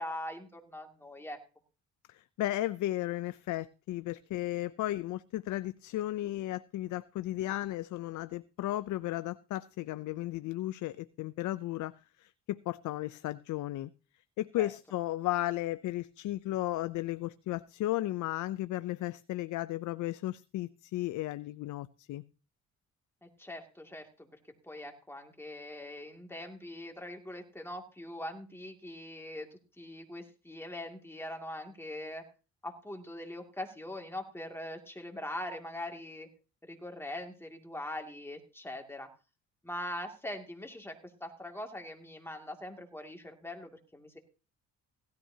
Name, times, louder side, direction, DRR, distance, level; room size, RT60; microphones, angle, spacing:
voice 1, 0.0-1.4 14.6-14.7 23.2-24.3 24.6-32.2 32.6-36.3 36.7-39.1 39.6-40.9 41.2-44.2, left 1 dB, 10° left, 2.3 m, -42 dB
voice 2, 2.1-11.9 12.2-13.9 14.4-22.2, left 15 dB, 75° left, 0.5 m, -34 dB
16.5 x 13.0 x 2.8 m
cardioid pair, 90°, 30 cm